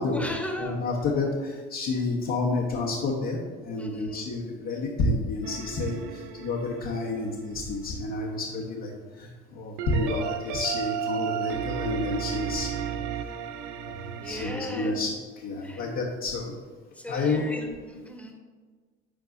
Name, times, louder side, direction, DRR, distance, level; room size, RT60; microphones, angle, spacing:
voice 1, 0.1-1.0 3.8-4.3 14.2-15.0 15.6-15.9 16.9-18.3, left 1 dB, 5° left, 2 dB, 1.3 m, -37 dB
voice 2, 0.6-3.4 3.6-13.0 13.9-14.0 14.2-15.1 15.4-16.5 17.1-17.4, left 3 dB, 55° left, -4 dB, 1.3 m, -29 dB
sound 1, 5.4-7.9 9.8-14.6, right 8 dB, 65° right, 0.7 m, -34 dB
11.0 x 4.6 x 2.7 m, 1.5 s
hypercardioid pair, 65°, 33 cm